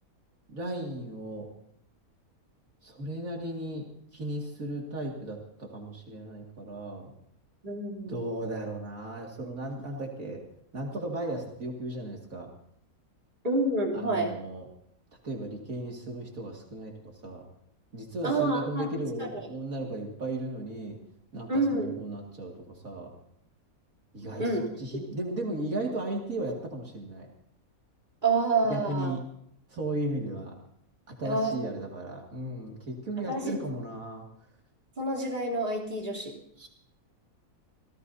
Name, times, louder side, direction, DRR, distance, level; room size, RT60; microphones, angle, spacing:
voice 1, 0.5-1.5 2.8-3.9 4.1-7.1 8.0-10.4 10.7-12.5 13.9-14.7 15.2-17.5 17.9-21.0 21.3-23.1 24.1-27.3 28.7-29.2 29.7-30.5 31.1-34.3 36.6-36.7, right 1 dB, 70° right, 0 dB, 2.7 m, -35 dB
voice 2, 7.6-8.2 13.4-14.3 18.2-18.9 19.2-19.5 21.5-22.0 24.4-24.6 28.2-29.2 31.2-31.7 33.3-33.6 35.0-36.3, right 2 dB, 30° right, -2 dB, 3.5 m, -28 dB
28.0 x 16.5 x 2.7 m, 0.69 s
omnidirectional pair, 1.5 m